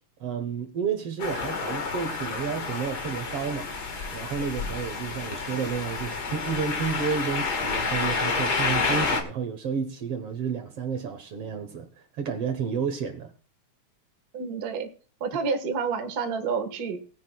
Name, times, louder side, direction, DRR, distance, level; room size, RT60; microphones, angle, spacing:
voice 1, 0.2-3.7 4.1-11.9 12.2-13.3, right 6 dB, 60° right, 2.0 m, -31 dB
sound 1, 1.2-9.2, left 4 dB, 40° left, 1.7 m, -29 dB
voice 2, 14.3-14.9 15.2-17.0, right 5 dB, 40° right, 1.5 m, -29 dB
19.0 x 10.5 x 2.3 m
omnidirectional pair, 3.5 m